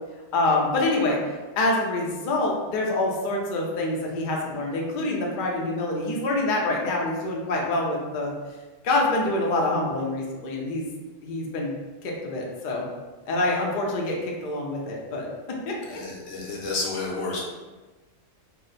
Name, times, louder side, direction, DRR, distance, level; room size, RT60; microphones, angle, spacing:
voice 1, 0.3-1.2 1.6-8.3 8.8-10.8 11.2-12.8 13.3-15.3 15.7-16.0, left 2 dB, 55° left, -1 dB, 0.6 m, -26 dB
voice 2, 15.8-17.4, left 3 dB, 75° left, -4 dB, 1.1 m, -30 dB
2.7 x 2.0 x 3.9 m, 1.3 s
omnidirectional pair, 1.3 m